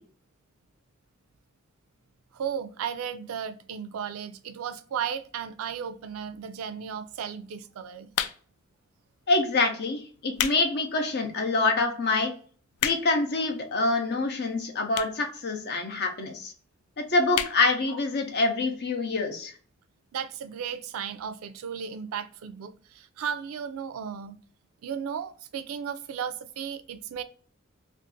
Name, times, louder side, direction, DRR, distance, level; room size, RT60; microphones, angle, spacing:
voice 1, 2.3-8.1 20.1-24.4 24.8-27.2, right 7 dB, 80° right, 0.3 m, -35 dB
sound 1, 8.1-8.7 9.4-9.6 10.1-10.6 11.1-11.2 11.8-11.9 12.1-12.2 12.4-13.3 14.1-14.2 14.9-15.3 15.6-15.7 15.8-15.9 16.2-16.3 16.6-16.8 17.3-17.6 18.0-18.1 18.3-18.4, left 10 dB, 85° left, 0.3 m, -30 dB
voice 2, 9.3-12.3 12.8-16.5 17.0-19.5, left 3 dB, 50° left, 0.6 m, -26 dB
2.5 x 2.4 x 3.7 m
head